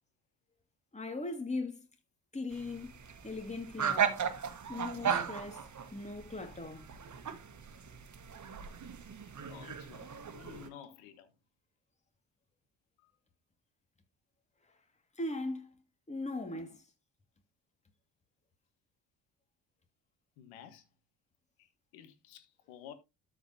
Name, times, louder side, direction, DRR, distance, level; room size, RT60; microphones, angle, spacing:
voice 1, 0.9-1.9 2.3-2.9 3.2-4.2 4.7-6.9 15.2-15.7 16.1-16.7, left 2 dB, 15° left, 2.3 m, -39 dB
sound 1, 2.5-10.7, right 7 dB, 35° right, 1.5 m, -37 dB
voice 2, 9.5-10.1 10.3-11.3 13.0-13.1 16.5-16.6 20.4-20.8 21.6-22.9, left 9 dB, 75° left, 1.7 m, -52 dB
13.0 x 4.7 x 2.9 m
hypercardioid pair, 50°, 48 cm